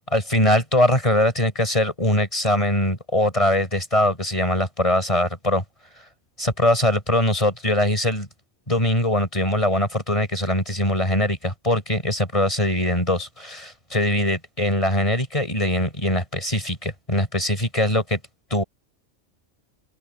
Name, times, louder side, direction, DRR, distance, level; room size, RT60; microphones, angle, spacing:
voice 1, 0.1-5.6 6.4-8.3 8.7-18.2 18.5-18.6, left 1 dB, 25° left, 7.4 m, -22 dB
open air
omnidirectional pair, 1.3 m